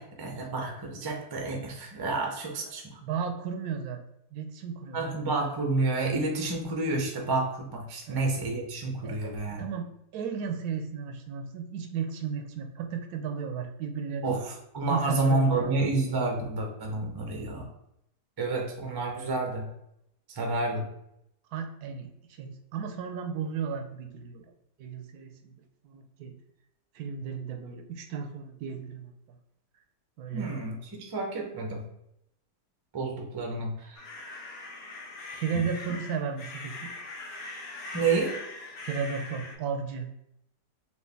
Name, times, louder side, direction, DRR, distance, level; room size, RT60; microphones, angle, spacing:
voice 1, 0.0-3.0 4.9-9.6 14.2-17.7 18.4-19.6 20.3-20.9 30.3-31.8 32.9-34.0 37.9-38.3, right 3 dB, 35° right, 1 dB, 0.4 m, -29 dB
voice 2, 3.0-4.0 4.3-5.1 8.1-8.3 9.0-9.3 9.6-9.9 10.1-14.3 14.9-15.8 21.5-24.5 24.8-25.6 25.8-26.3 26.9-29.4 30.2-30.5 35.3-36.9 38.8-40.2, right 6 dB, 75° right, 6 dB, 1.1 m, -34 dB
sound 1, 33.9-39.5, left 3 dB, 85° left, 1.4 m, -41 dB
4.5 x 2.5 x 3.4 m, 0.77 s
omnidirectional pair, 1.7 m